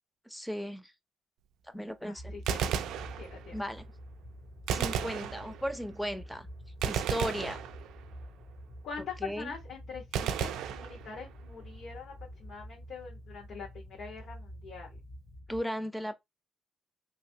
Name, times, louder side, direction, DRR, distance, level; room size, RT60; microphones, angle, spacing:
voice 1, 0.3-0.9 1.7-2.3 3.5-3.8 4.7-6.5 6.8-7.6 9.2-9.5 15.5-16.1, equal, 5° left, 0.6 m, -36 dB
voice 2, 2.1-2.7 3.1-3.5 8.8-15.0, left 5 dB, 70° left, 1.3 m, -44 dB
sound 1, 2.2-15.6, equal, 35° left, 0.9 m, -48 dB
Gunshot gunfire, 2.3-3.7 4.7-5.9 6.8-8.2 10.1-11.5, right 8 dB, 85° right, 0.3 m, -34 dB
3.0 x 2.7 x 2.8 m
cardioid pair, 90°, 0 cm